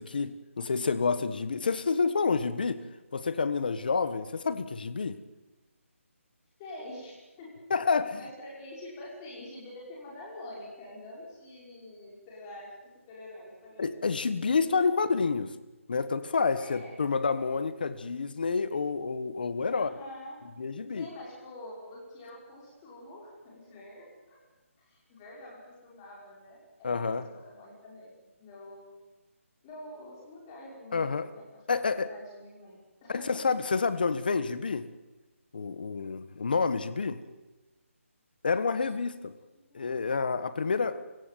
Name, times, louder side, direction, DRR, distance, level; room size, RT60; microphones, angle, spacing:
voice 1, 0.0-2.9 3.1-5.2 7.7-8.3 13.8-15.5 15.9-19.9 20.6-21.1 26.8-27.3 30.9-31.3 31.7-32.1 33.1-34.9 35.5-37.2 38.4-39.3 39.7-41.0, left 4 dB, 40° left, 13 dB, 1.4 m, -29 dB
voice 2, 6.6-7.6 8.2-12.8 13.1-14.1 16.6-17.0 19.7-20.4 20.9-24.4 24.9-28.9 29.6-33.4 37.0-37.2 38.5-38.9 39.7-40.0, left 1 dB, 15° left, -4 dB, 5.6 m, -47 dB
26.5 x 16.0 x 9.2 m, 1.1 s
hypercardioid pair, 175°, 8 cm